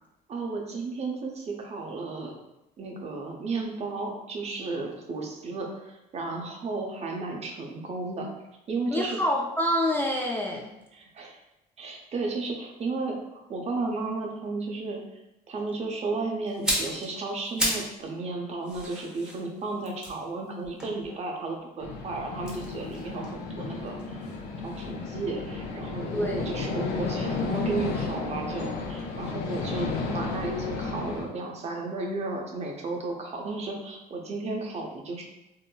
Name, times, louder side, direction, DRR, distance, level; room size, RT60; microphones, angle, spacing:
voice 1, 0.3-2.3 2.8-8.3 8.7-9.2 10.9-11.4 11.8-15.0 15.5-23.9 24.6-35.2, right 3 dB, 40° right, 1 dB, 0.6 m, -33 dB
voice 2, 8.9-10.7 26.1-26.4, equal, 10° left, -2 dB, 0.3 m, -27 dB
sound 1, 16.5-18.0 18.3-21.5 22.4-24.4 24.7-24.9, equal, 5° right, 0.8 m, -34 dB
sound 2, 21.8-31.2, left 4 dB, 75° left, 0.5 m, -33 dB
3.7 x 2.0 x 2.2 m, 0.91 s
cardioid pair, 110°, 17 cm